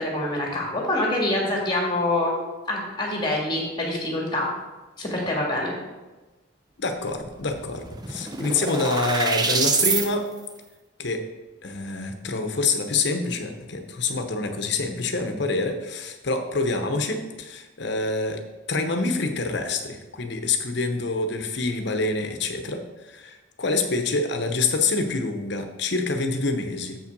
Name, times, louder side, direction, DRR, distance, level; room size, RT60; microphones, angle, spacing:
voice 1, 0.0-2.4 2.7-4.5 5.0-5.7, left 1 dB, 25° left, -1 dB, 1.9 m, -25 dB
voice 2, 6.8-10.3 11.0-11.2 11.6-18.4 18.7-27.0, left 3 dB, 60° left, 6 dB, 0.9 m, -26 dB
sound 1, 7.2-7.3 7.6-10.1, right 4 dB, 20° right, 0.6 m, -25 dB
7.4 x 5.7 x 5.3 m, 1.2 s
head